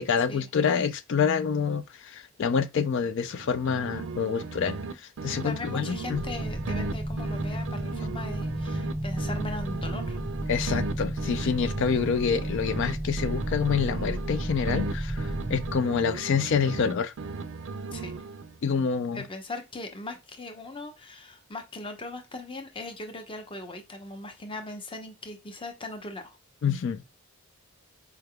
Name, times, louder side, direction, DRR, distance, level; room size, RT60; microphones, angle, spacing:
voice 1, 0.0-6.2 10.5-17.1 18.6-19.2 26.6-27.0, left 6 dB, 55° left, 0.4 m, -27 dB
sound 1, 3.3-4.9 5.2-8.9 9.2-12.9 13.2-16.9 17.2-18.6, right 3 dB, 60° right, 0.4 m, -36 dB
voice 2, 5.3-10.2 17.9-18.1 19.1-26.4, left 2 dB, 25° left, 0.7 m, -39 dB
sound 2, 6.1-15.8, right 1 dB, 40° left, 1.6 m, -33 dB
4.7 x 3.4 x 2.2 m
head